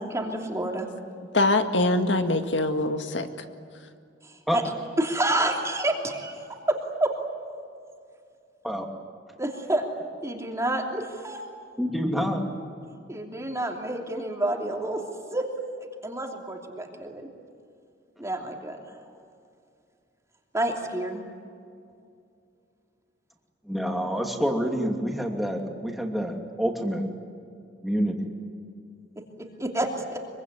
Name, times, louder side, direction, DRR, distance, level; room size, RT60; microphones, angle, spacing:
voice 1, 0.1-0.9 4.2-4.6 5.0-7.1 9.4-9.8 10.2-11.4 13.1-15.0 15.3-15.5 16.0-17.3 18.2-19.0 20.5-21.2 29.4-30.2, right 1 dB, 15° right, 1 dB, 3.0 m, -29 dB
voice 2, 1.3-3.5, left 2 dB, 75° left, 7 dB, 1.9 m, -23 dB
voice 3, 11.8-12.5 23.6-27.0 27.8-28.3, equal, ahead, 2 dB, 2.8 m, -27 dB
25.0 x 24.0 x 9.7 m, 2.4 s
head